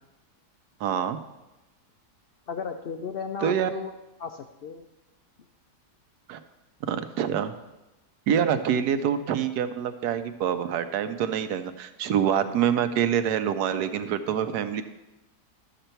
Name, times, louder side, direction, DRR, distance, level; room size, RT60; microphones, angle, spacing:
voice 1, 0.8-1.2 3.4-3.7 6.3-6.4 6.9-7.5 8.3-14.8, right 8 dB, 80° right, 10 dB, 1.2 m, -26 dB
voice 2, 2.5-3.9 4.2-4.8, left 6 dB, 85° left, 6 dB, 0.5 m, -35 dB
12.5 x 6.7 x 4.4 m, 1.0 s
omnidirectional pair, 1.7 m